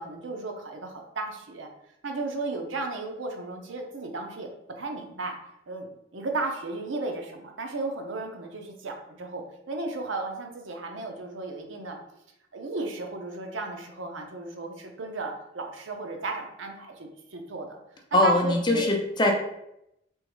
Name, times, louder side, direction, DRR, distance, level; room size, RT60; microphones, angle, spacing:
voice 1, 0.0-1.7 2.0-4.5 4.8-5.4 5.7-12.0 12.5-17.8 18.2-18.8, right 3 dB, 85° right, 3 dB, 0.6 m, -34 dB
voice 2, 18.1-19.3, left 1 dB, 25° left, 2 dB, 0.4 m, -22 dB
3.6 x 3.0 x 3.0 m, 0.82 s
head